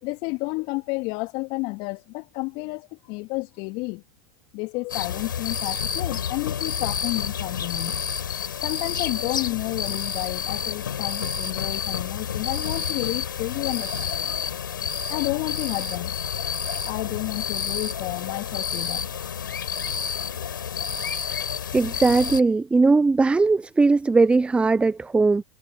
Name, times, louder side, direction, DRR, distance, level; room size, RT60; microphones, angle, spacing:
voice 1, 0.0-4.0 4.5-8.0 8.6-13.9 14.2-14.3 15.1-16.1 16.9-19.1, left 26 dB, 50° left, 2.9 m, -31 dB
sound 1, 4.9-22.4, left 7 dB, 80° left, 4.9 m, -29 dB
voice 2, 21.7-25.4, right 3 dB, 10° right, 0.7 m, -19 dB
hypercardioid pair, 95°, 11 cm